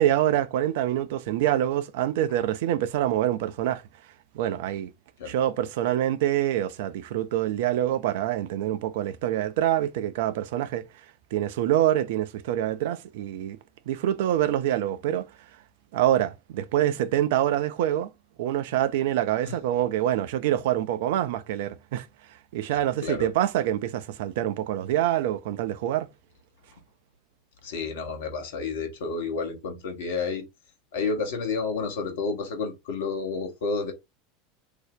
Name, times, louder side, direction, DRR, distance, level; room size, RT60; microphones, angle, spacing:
voice 1, 0.0-3.8 4.3-4.9 5.3-10.8 11.3-13.6 13.9-15.3 15.9-18.1 18.4-22.1 22.5-26.1, right 12 dB, 60° right, 0.3 m, -25 dB
voice 2, 27.6-30.4 30.9-33.9, left 4 dB, 65° left, 0.9 m, -30 dB
2.6 x 2.0 x 3.6 m
figure-of-eight pair, 80°, 0 cm